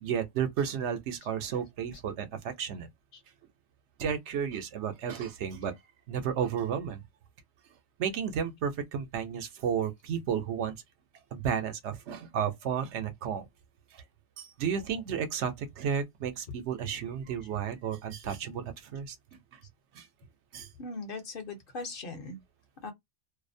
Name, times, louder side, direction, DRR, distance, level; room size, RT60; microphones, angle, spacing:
voice 1, 0.0-2.9 4.0-5.7 6.1-7.0 8.0-10.7 11.3-13.5 14.4-19.2 19.9-20.0 20.5-20.7, right 7 dB, 85° right, 1.0 m, -32 dB
voice 2, 20.8-22.4 22.8-22.9, left 3 dB, 55° left, 0.9 m, -39 dB
2.4 x 2.0 x 2.6 m
omnidirectional pair, 1.1 m